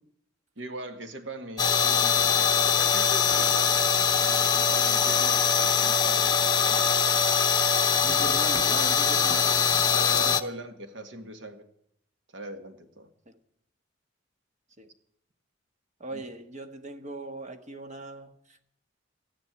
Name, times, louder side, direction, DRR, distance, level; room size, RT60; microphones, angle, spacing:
voice 1, 0.6-3.9 4.2-6.9 9.9-11.7 12.3-13.1 16.1-16.2, right 1 dB, 70° right, 7 dB, 1.7 m, -41 dB
sound 1, 1.6-10.4, left 6 dB, 20° left, 0.9 m, -23 dB
voice 2, 8.0-9.5 9.8-10.6 13.3-13.4 14.8-14.9 16.0-18.3, right 2 dB, 40° right, 7 dB, 1.4 m, -40 dB
14.0 x 10.5 x 9.0 m, 0.74 s
head